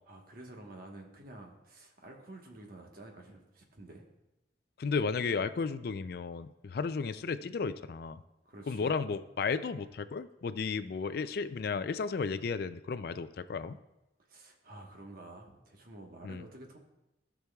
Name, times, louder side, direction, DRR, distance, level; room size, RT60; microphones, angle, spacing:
voice 1, 0.1-4.0 8.4-8.9 11.3-11.4 14.3-16.8, right 2 dB, 55° right, 1 dB, 1.3 m, -50 dB
voice 2, 4.8-8.2 8.7-13.8 16.2-16.4, left 5 dB, 60° left, 13 dB, 0.4 m, -34 dB
16.0 x 6.2 x 2.3 m, 0.95 s
head